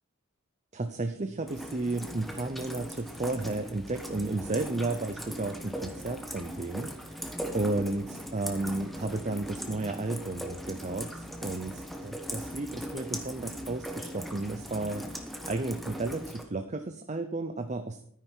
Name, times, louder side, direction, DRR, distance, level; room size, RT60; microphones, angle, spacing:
voice 1, 0.7-7.2 7.5-18.0, right 2 dB, 35° right, 7 dB, 0.7 m, -33 dB
Rain, 1.5-16.4, equal, ahead, 1.2 m, -40 dB
12.5 x 9.8 x 4.6 m, 0.63 s
head